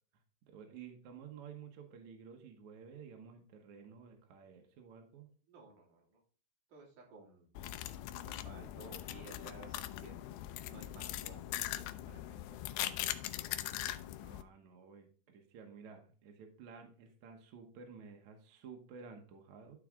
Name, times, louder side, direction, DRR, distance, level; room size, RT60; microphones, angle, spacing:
voice 1, 0.5-5.3 14.2-19.8, right 6 dB, 70° right, 3 dB, 1.8 m, -53 dB
voice 2, 5.5-6.2 6.7-7.5 8.2-10.2 10.7-12.2 12.5-12.6 12.9-13.1, right 3 dB, 55° right, -1 dB, 3.8 m, -56 dB
sound 1, 7.6-14.4, left 13 dB, 80° left, 2.3 m, -41 dB
12.0 x 4.9 x 3.6 m, 0.42 s
omnidirectional pair, 4.7 m